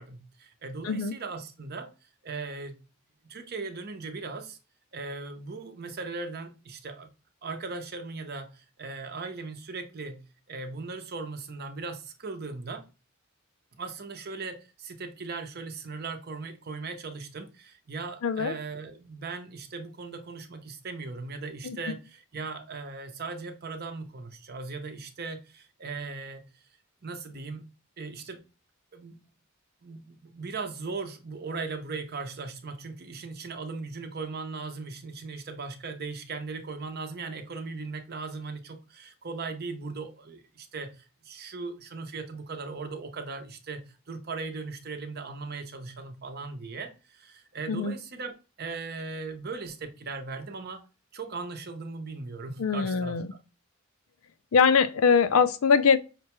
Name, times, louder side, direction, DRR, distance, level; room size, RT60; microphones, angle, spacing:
voice 1, 0.0-2.8 3.2-4.6 4.9-7.1 7.4-10.2 10.5-12.9 13.8-26.6 27.0-27.6 28.0-28.4 28.9-29.2 29.8-50.8 51.1-53.2, right 4 dB, 50° right, 0.7 m, -38 dB
voice 2, 18.2-18.6 21.6-21.8 47.7-47.9 52.6-53.3 54.5-56.0, left 5 dB, 80° left, 0.4 m, -22 dB
5.8 x 2.2 x 2.9 m
head